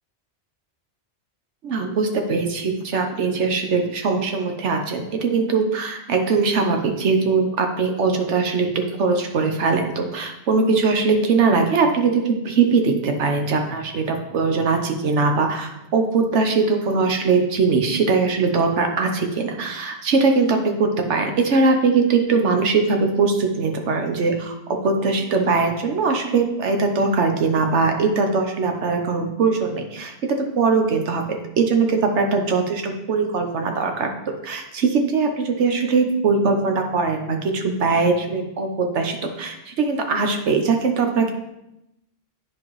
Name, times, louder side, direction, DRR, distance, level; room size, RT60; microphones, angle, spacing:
voice 1, 1.6-30.1 30.6-34.1 34.4-41.3, right 4 dB, 80° right, 4 dB, 1.2 m, -21 dB
10.0 x 4.6 x 3.1 m, 0.87 s
omnidirectional pair, 1.2 m